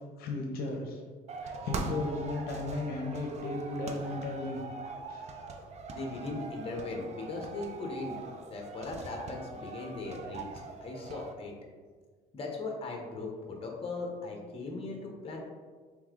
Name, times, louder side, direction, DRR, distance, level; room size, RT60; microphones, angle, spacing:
voice 1, 0.2-1.0 1.4-4.6 5.1-5.2, left 2 dB, 70° left, 1 dB, 0.7 m, -35 dB
sound 1, 1.3-11.3, right 4 dB, 40° right, 0.5 m, -42 dB
voice 2, 5.9-8.2 8.5-10.5 10.8-11.5 12.3-15.4, left 3 dB, 35° left, 1 dB, 0.8 m, -38 dB
3.4 x 3.1 x 3.6 m, 1.5 s
cardioid pair, 110°, 17 cm